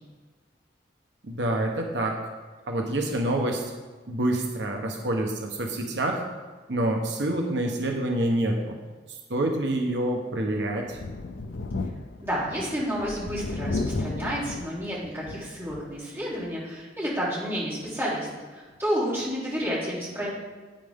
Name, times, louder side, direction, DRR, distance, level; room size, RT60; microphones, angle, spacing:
voice 1, 1.2-2.2 2.7-3.6 4.1-6.2 6.7-8.7 9.3-11.0, right 1 dB, 80° right, 1 dB, 1.1 m, -27 dB
Thunder, 10.9-16.0 16.4-16.5 17.9-18.0, left 3 dB, 80° left, 0.5 m, -34 dB
voice 2, 12.2-20.3, equal, 15° right, -8 dB, 3.2 m, -30 dB
9.1 x 9.0 x 3.7 m, 1.4 s
head